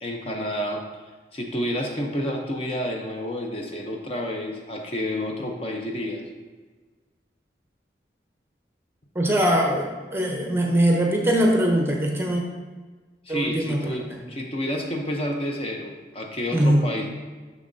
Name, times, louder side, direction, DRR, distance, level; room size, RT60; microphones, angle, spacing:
voice 1, 0.0-0.8 1.3-6.2 13.3-17.1, left 1 dB, 35° left, 1 dB, 0.7 m, -29 dB
voice 2, 9.1-12.4 13.3-14.2 16.5-16.9, right 1 dB, 15° right, 1 dB, 0.7 m, -22 dB
6.9 x 6.0 x 2.7 m, 1.4 s
head